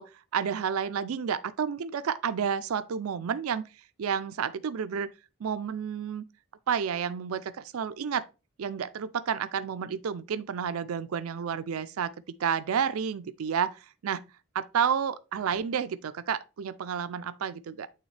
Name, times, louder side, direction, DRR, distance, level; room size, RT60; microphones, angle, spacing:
voice 1, 0.0-3.6 4.0-5.1 5.4-6.2 6.7-8.2 8.6-12.1 12.4-14.2 14.5-17.9, right 7 dB, 85° right, 0.4 m, -30 dB
8.7 x 3.6 x 3.2 m
head